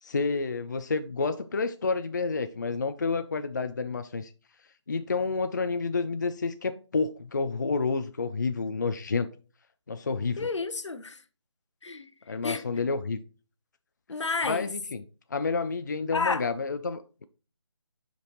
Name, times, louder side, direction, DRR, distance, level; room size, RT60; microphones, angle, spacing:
voice 1, 0.0-4.3 4.9-9.3 9.9-10.5 12.3-13.2 14.4-15.0 15.3-17.2, left 4 dB, 40° left, 0.4 m, -29 dB
voice 2, 10.4-11.2 11.8-12.1 12.4-12.6 14.1-14.7 16.1-16.5, left 4 dB, 85° left, 0.9 m, -30 dB
7.3 x 5.2 x 3.0 m
figure-of-eight pair, 170°, 15 cm